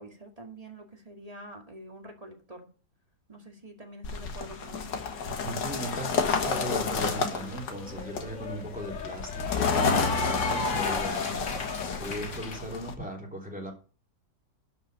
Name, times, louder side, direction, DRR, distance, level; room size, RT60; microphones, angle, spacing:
voice 1, 0.0-2.7 3.3-5.0, right 1 dB, 20° right, 2 dB, 2.2 m, -46 dB
sound 1, 4.0-12.9, left 5 dB, 80° left, 2.0 m, -30 dB
voice 2, 5.3-11.3 12.0-13.7, equal, 5° right, 0 dB, 3.0 m, -37 dB
Cheering / Applause, 7.3-12.6, left 3 dB, 45° left, 1.9 m, -35 dB
11.5 x 5.5 x 6.6 m, 0.37 s
omnidirectional pair, 1.9 m